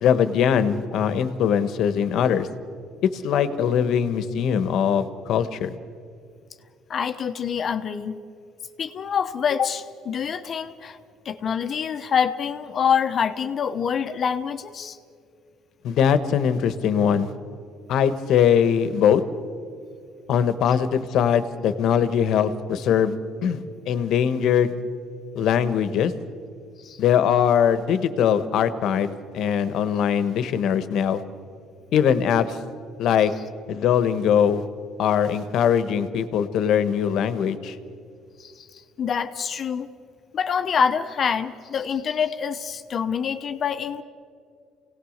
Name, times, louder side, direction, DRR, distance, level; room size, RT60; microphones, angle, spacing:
voice 1, 0.0-2.5 3.1-5.7 15.8-17.3 17.9-19.2 20.3-23.2 23.4-24.7 25.3-26.1 27.0-31.2 31.9-32.6 33.0-33.3 33.7-34.6 35.0-37.8, left 8 dB, 65° left, 12 dB, 1.3 m, -21 dB
voice 2, 6.9-8.2 8.8-11.0 11.2-15.0 26.8-27.0 38.4-39.9 40.3-44.0, left 7 dB, 45° left, 9 dB, 1.0 m, -26 dB
28.5 x 18.0 x 6.6 m, 2.3 s
cardioid pair, 110°, 0 cm